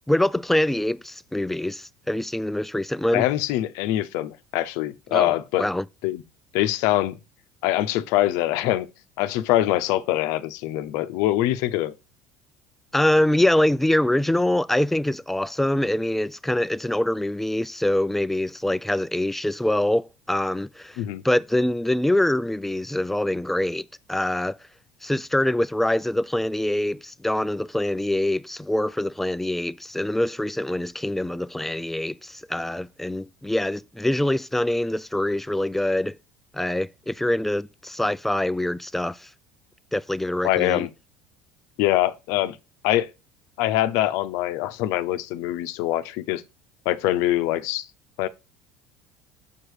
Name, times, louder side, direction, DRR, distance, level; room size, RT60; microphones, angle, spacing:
voice 1, 0.1-3.2 5.1-5.3 5.6-5.8 12.9-24.6 25.0-36.1 36.5-39.3 39.9-40.9, left 1 dB, 5° left, 0.3 m, -24 dB
voice 2, 3.1-5.6 6.0-6.2 6.5-7.2 7.6-8.9 9.2-11.9 21.0-21.2 40.4-40.9 41.8-42.6 42.8-43.1 43.6-46.4 46.9-47.8 48.2-48.3, left 14 dB, 70° left, 0.7 m, -23 dB
7.3 x 4.7 x 4.9 m
supercardioid pair, 90°, 5 cm